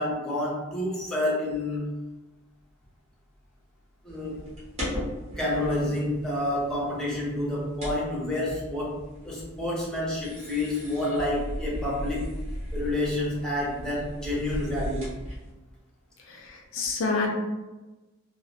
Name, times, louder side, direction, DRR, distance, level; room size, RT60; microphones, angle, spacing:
voice 1, 0.0-2.0 4.0-4.4 5.4-9.0 9.2-12.3 12.7-15.1, left 1 dB, 5° left, -6 dB, 0.6 m, -29 dB
sound 1, 4.1-15.5, equal, 30° right, 0.7 m, -38 dB
voice 2, 16.3-17.3, left 3 dB, 65° left, 0 dB, 0.4 m, -28 dB
2.2 x 2.1 x 2.6 m, 1.1 s
head